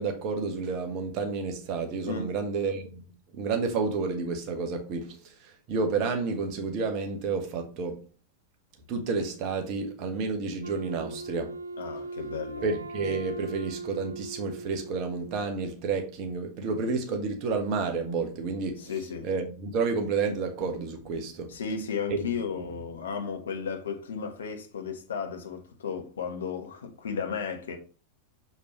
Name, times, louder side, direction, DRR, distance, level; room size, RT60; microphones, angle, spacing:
voice 1, 0.0-8.0 8.9-11.5 12.6-18.9 19.2-21.5 22.1-22.3, right 4 dB, 40° right, 1.5 m, -30 dB
Wind instrument woodwind instrument, 10.6-15.6, right 2 dB, 85° right, 0.6 m, -39 dB
voice 2, 11.8-12.6 18.8-19.3 21.5-27.8, left 6 dB, 65° left, 1.4 m, -34 dB
6.6 x 5.6 x 3.1 m
figure-of-eight pair, 90°, 0 cm